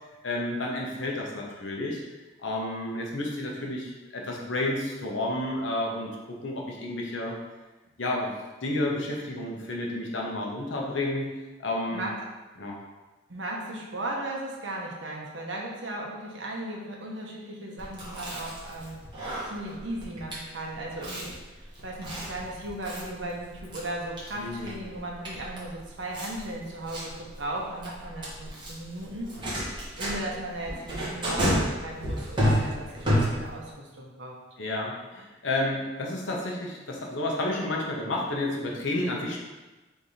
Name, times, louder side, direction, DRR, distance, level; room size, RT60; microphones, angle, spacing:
voice 1, 0.2-2.0 2.4-6.1 6.4-7.4 8.0-8.3 8.6-11.3 11.6-12.0 12.6-12.8 24.4-24.7 34.6-39.4, left 1 dB, 75° left, -1 dB, 0.9 m, -31 dB
voice 2, 13.3-19.0 19.5-29.4 30.0-34.4, right 1 dB, 70° right, -2 dB, 1.0 m, -36 dB
Chewing mastication, 17.8-33.7, equal, 25° right, 1.2 m, -32 dB
3.6 x 3.4 x 4.2 m, 1.2 s
head